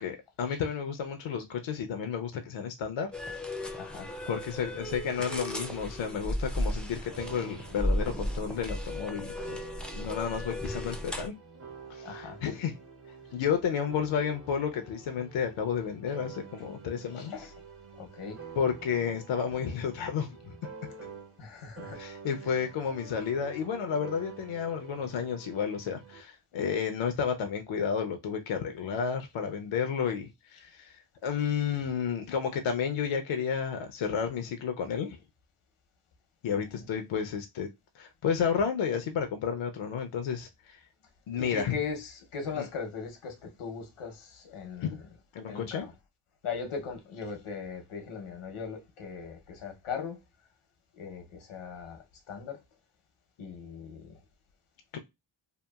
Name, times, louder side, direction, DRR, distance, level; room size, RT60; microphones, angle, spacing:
voice 1, 0.0-3.1 4.3-9.6 9.9-11.3 11.9-12.8 13.3-17.5 18.6-20.7 21.9-35.2 36.4-37.7 37.9-40.8 41.3-41.8 42.6-42.7 44.8-45.0 45.3-45.9 54.9-55.0, left 7 dB, 70° left, 0.5 m, -31 dB
sound 1, 3.1-11.3, left 1 dB, ahead, 0.5 m, -35 dB
voice 2, 3.7-4.1 12.0-12.4 17.1-17.5 17.9-18.5 21.4-22.0 22.4-22.5 36.5-36.9 41.3-45.0 45.5-45.9 46.4-50.2 50.9-52.6 53.4-54.2, left 5 dB, 85° left, 0.9 m, -39 dB
sound 2, 7.1-21.5 21.8-26.2, right 5 dB, 30° right, 0.8 m, -48 dB
2.8 x 2.3 x 2.2 m
cardioid pair, 70°, 49 cm